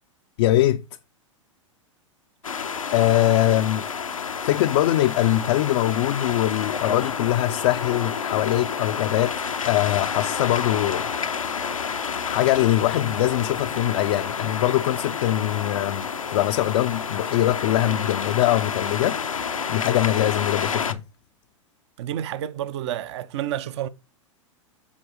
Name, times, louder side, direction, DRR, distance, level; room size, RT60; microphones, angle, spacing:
voice 1, 0.4-0.8 2.9-3.9 4.4-11.1 12.2-19.2 19.7-21.0, left 14 dB, 55° left, 0.4 m, -22 dB
sound 1, 2.4-20.9, left 6 dB, 90° left, 0.7 m, -29 dB
voice 2, 22.0-23.9, right 11 dB, 60° right, 0.7 m, -29 dB
7.2 x 4.2 x 4.9 m
figure-of-eight pair, 100°, 17 cm